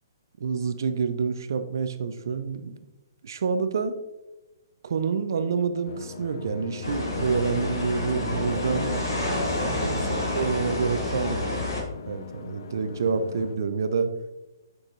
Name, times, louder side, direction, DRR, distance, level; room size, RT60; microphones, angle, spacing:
voice 1, 0.4-2.8 3.2-4.0 4.8-8.9 9.6-11.6 12.1-14.1, right 5 dB, 65° right, 10 dB, 0.7 m, -28 dB
sound 1, 5.8-13.6, left 4 dB, 60° left, 0.7 m, -39 dB
sound 2, 6.8-11.8, left 1 dB, 90° left, 2.3 m, -28 dB
8.8 x 6.3 x 2.6 m, 1.0 s
hypercardioid pair, 135°, 2 cm